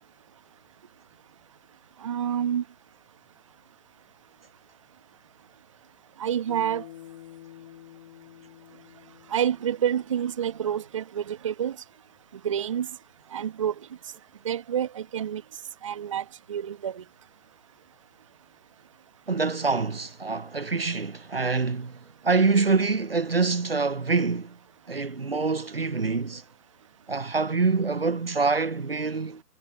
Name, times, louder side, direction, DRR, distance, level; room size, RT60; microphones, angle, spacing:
voice 1, 2.0-2.6 6.2-6.8 9.3-11.8 12.4-12.9 13.3-13.7 14.4-15.4 15.8-17.0, right 9 dB, 20° right, 1.0 m, -28 dB
Bass guitar, 6.5-10.9, left 13 dB, 20° left, 1.5 m, -49 dB
voice 2, 19.3-24.6 24.9-26.4 27.1-29.4, right 4 dB, 40° right, 0.5 m, -25 dB
figure-of-eight pair, 150°, 48 cm